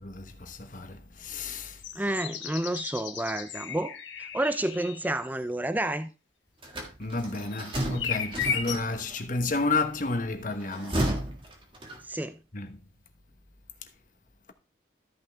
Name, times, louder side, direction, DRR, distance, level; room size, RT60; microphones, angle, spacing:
voice 1, 0.0-1.8 7.0-11.1 12.5-12.8, left 3 dB, 45° left, 1.1 m, -31 dB
sound 1, 1.8-5.3 7.5-7.6 7.9-8.7, left 7 dB, 70° left, 1.3 m, -35 dB
voice 2, 2.0-3.9 4.2-6.1 12.1-12.4, right 1 dB, 10° right, 0.4 m, -30 dB
sound 2, 6.6-9.2 10.5-12.3, right 1 dB, 25° right, 1.7 m, -33 dB
13.0 x 5.6 x 3.4 m
head